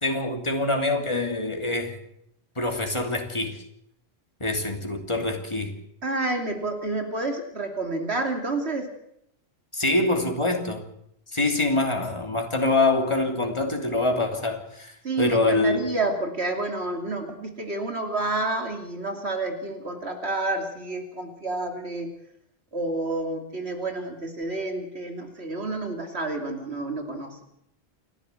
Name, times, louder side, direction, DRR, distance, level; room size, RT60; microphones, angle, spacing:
voice 1, 0.0-2.0 2.6-3.6 4.4-5.7 9.7-10.8 11.3-15.8, left 2 dB, 25° left, 3 dB, 2.9 m, -25 dB
voice 2, 6.0-8.9 15.0-22.1 22.7-27.4, right 2 dB, 70° right, 4 dB, 3.1 m, -29 dB
28.5 x 11.5 x 8.3 m, 0.75 s
omnidirectional pair, 1.1 m